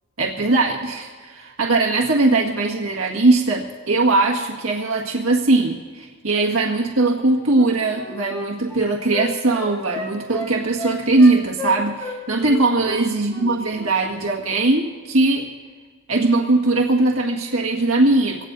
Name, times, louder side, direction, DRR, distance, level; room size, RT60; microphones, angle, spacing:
voice 1, 0.2-15.5 16.1-18.5, right 2 dB, 70° right, -1 dB, 1.8 m, -20 dB
Wind instrument woodwind instrument, 7.5-12.2 12.4-13.5 13.7-13.9, left 1 dB, 10° left, 4.4 m, -32 dB
24.5 x 18.0 x 2.7 m, 1.5 s
head